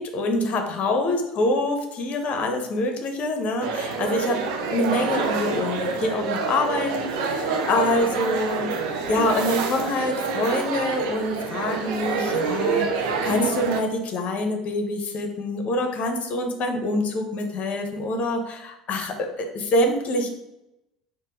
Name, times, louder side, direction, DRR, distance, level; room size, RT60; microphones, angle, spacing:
voice 1, 0.0-20.3, left 2 dB, 40° left, 4 dB, 0.9 m, -26 dB
sound 1, 3.6-13.8, right 5 dB, 60° right, 0.6 m, -27 dB
4.5 x 2.3 x 4.7 m, 0.89 s
figure-of-eight pair, 65°, 4 cm